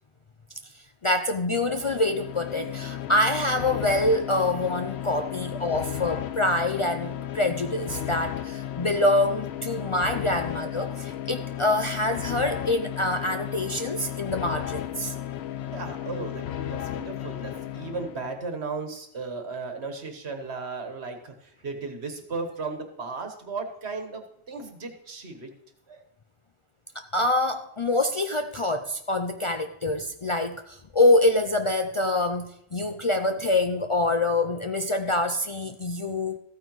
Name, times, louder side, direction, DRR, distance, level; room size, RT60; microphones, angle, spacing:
voice 1, 1.0-15.1 26.9-36.4, left 2 dB, 45° left, 7 dB, 0.4 m, -25 dB
sound 1, 1.5-18.4, left 11 dB, 80° left, 0.9 m, -34 dB
voice 2, 15.7-25.5 25.9-26.0, right 4 dB, 80° right, 5 dB, 1.7 m, -35 dB
14.5 x 9.1 x 3.1 m, 0.71 s
omnidirectional pair, 1.1 m